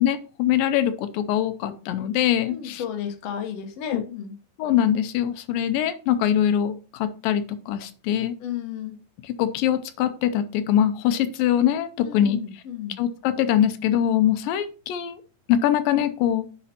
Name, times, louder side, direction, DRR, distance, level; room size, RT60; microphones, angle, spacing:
voice 1, 0.0-2.8 3.9-4.0 4.6-8.4 9.4-12.4 13.0-15.2 15.5-16.5, left 10 dB, 80° left, 10 dB, 2.3 m, -23 dB
voice 2, 2.5-4.3 8.4-9.0 12.0-13.0, left 8 dB, 65° left, 6 dB, 1.6 m, -33 dB
9.9 x 5.3 x 2.8 m, 0.37 s
omnidirectional pair, 4.1 m